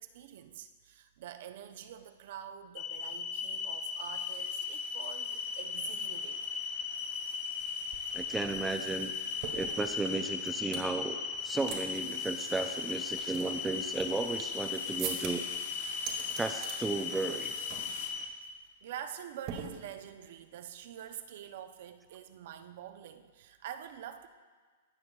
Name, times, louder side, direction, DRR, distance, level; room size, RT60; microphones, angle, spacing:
voice 1, 0.0-6.5 18.8-24.3, right 10 dB, 60° right, 9 dB, 0.5 m, -46 dB
sound 1, 2.8-18.3, left 6 dB, 40° left, 0.8 m, -37 dB
sound 2, 3.3-18.1, left 5 dB, 85° left, 1.0 m, -51 dB
sound 3, 7.6-7.7 7.9-10.9 11.3-11.8 12.1-12.2 12.7-14.6 15.0-15.6 15.9-16.8 17.1-17.4 17.7-18.0 18.3-18.5 19.5-20.2, right 7 dB, 40° right, 1.5 m, -43 dB
voice 2, 8.1-9.1 9.5-15.4 16.4-17.5, right 3 dB, 10° right, 6 dB, 0.3 m, -34 dB
17.0 x 5.7 x 2.3 m, 1.5 s
hypercardioid pair, 145°, 0 cm